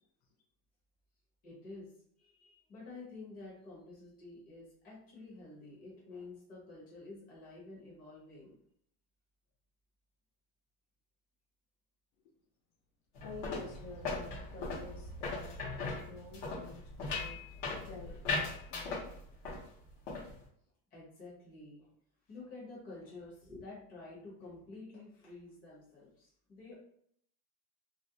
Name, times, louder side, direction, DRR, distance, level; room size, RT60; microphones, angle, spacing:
voice 1, 1.4-1.9 2.2-8.6 20.3-20.4 20.9-21.9 22.3-26.7, left 3 dB, 20° left, -7 dB, 0.8 m, -50 dB
sound 1, 13.1-19.7 19.9-20.4, left 3 dB, 50° left, 0.9 m, -39 dB
voice 2, 13.2-15.6 16.0-19.1, left 3 dB, 80° left, 0 dB, 0.8 m, -49 dB
2.4 x 2.0 x 2.7 m, 0.67 s
supercardioid pair, 170°, 45 cm